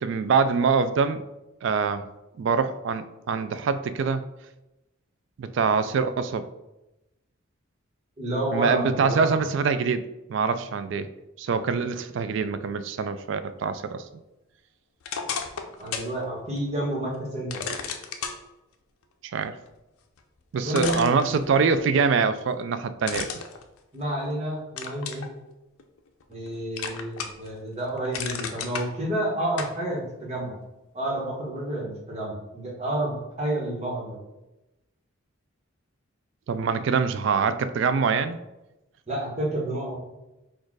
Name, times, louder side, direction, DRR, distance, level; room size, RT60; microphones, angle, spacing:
voice 1, 0.0-1.2 1.6-2.0 2.4-4.2 5.4-6.5 8.5-10.0 10.3-11.1 11.4-14.0 19.3-19.6 20.5-23.3 36.5-38.4, right 5 dB, 60° right, 12 dB, 0.3 m, -24 dB
voice 2, 8.2-9.3 11.7-11.8 15.8-17.6 20.6-21.1 23.9-25.3 26.3-30.5 30.9-34.2 39.1-40.0, right 1 dB, 30° right, -3 dB, 1.2 m, -30 dB
sound 1, 15.0-16.1 16.6-16.7 17.5-18.4 20.2-20.3 20.7-21.8 23.0-24.3 24.8-25.3 25.8-26.5 26.8-27.5 27.8-28.9 29.6-29.8, left 6 dB, 85° left, 0.5 m, -33 dB
4.3 x 2.5 x 4.6 m, 0.96 s
head